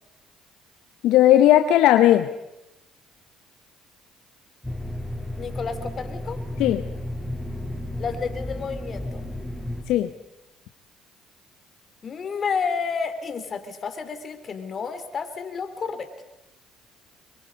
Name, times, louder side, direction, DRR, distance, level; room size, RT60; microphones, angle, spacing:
voice 1, 1.0-2.3 6.6-6.8 9.9-10.1, left 13 dB, 75° left, 9 dB, 0.8 m, -16 dB
sound 1, 4.6-9.8, left 1 dB, 5° left, 7.2 m, -33 dB
voice 2, 5.4-6.4 8.0-9.2 12.0-16.1, left 5 dB, 45° left, 10 dB, 3.0 m, -30 dB
24.0 x 23.0 x 5.3 m, 0.92 s
supercardioid pair, 65°, 0 cm